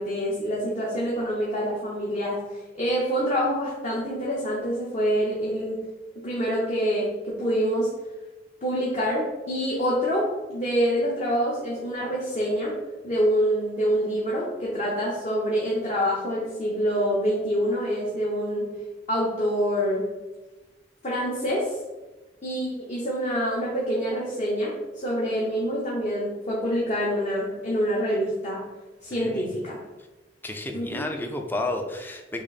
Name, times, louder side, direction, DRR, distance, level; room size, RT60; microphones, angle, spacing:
voice 1, 0.0-5.8 6.2-7.9 8.6-12.7 13.0-18.7 19.1-20.1 21.0-21.7 22.4-28.6 29.0-29.8 30.7-31.0, equal, 40° left, -5 dB, 0.9 m, -26 dB
voice 2, 29.1-29.5 30.4-32.4, left 2 dB, 10° left, 3 dB, 0.4 m, -31 dB
6.1 x 2.1 x 4.1 m, 1.1 s
head